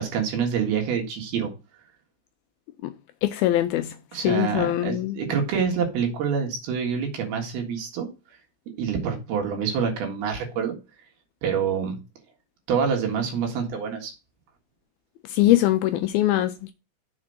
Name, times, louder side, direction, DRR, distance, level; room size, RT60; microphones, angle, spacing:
voice 1, 0.0-1.5 4.1-8.1 8.8-10.7 11.4-12.0 12.7-14.1, right 6 dB, 70° right, 3.7 m, -26 dB
voice 2, 3.2-3.9 4.2-5.2 15.3-16.7, left 14 dB, 80° left, 2.2 m, -22 dB
7.2 x 4.4 x 6.4 m
omnidirectional pair, 4.7 m